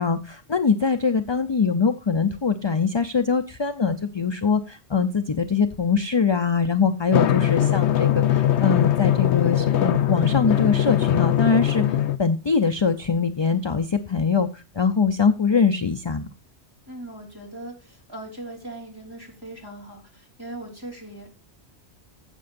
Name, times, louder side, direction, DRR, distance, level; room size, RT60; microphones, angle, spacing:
voice 1, 0.0-16.3, left 5 dB, 35° left, 9 dB, 0.5 m, -23 dB
Drum, 7.1-12.2, left 11 dB, 75° left, 1.0 m, -21 dB
voice 2, 16.9-21.3, right 1 dB, 20° right, -1 dB, 3.4 m, -39 dB
15.0 x 7.6 x 2.6 m, 0.31 s
omnidirectional pair, 1.2 m